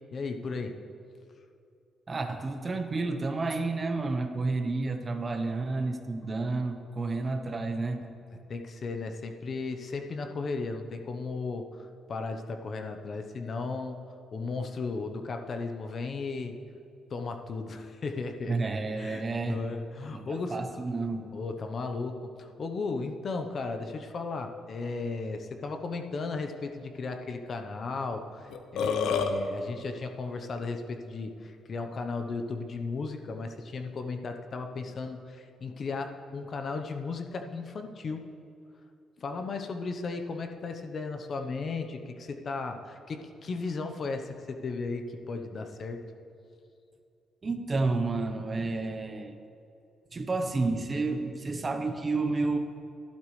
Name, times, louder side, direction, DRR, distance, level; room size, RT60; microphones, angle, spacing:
voice 1, 0.1-0.8 8.5-14.0 14.3-16.6 17.1-18.6 18.9-20.6 21.3-38.3 39.2-46.0, left 4 dB, 50° left, 5 dB, 0.9 m, -35 dB
voice 2, 2.1-8.1 18.5-19.6 20.1-21.3 47.4-49.4 50.1-52.6, right 3 dB, 30° right, 6 dB, 0.9 m, -30 dB
Burping eructation, 28.1-28.2 28.5-29.3, left 6 dB, 80° left, 0.7 m, -27 dB
12.0 x 11.5 x 3.3 m, 2.6 s
cardioid pair, 90°, 0 cm